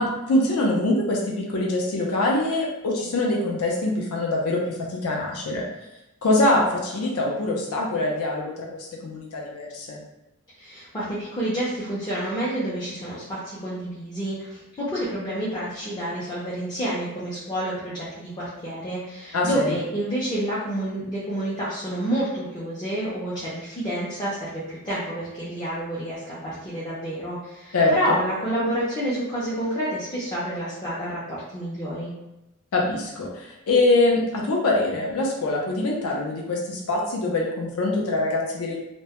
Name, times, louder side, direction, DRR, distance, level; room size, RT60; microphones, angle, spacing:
voice 1, 0.0-5.6 6.2-8.7 9.0-10.0 19.3-19.7 27.7-28.2 32.7-38.7, left 2 dB, 75° left, -2 dB, 0.5 m, -24 dB
voice 2, 10.6-32.1, right 1 dB, 20° left, -9 dB, 0.4 m, -29 dB
2.1 x 2.0 x 2.8 m, 0.94 s
head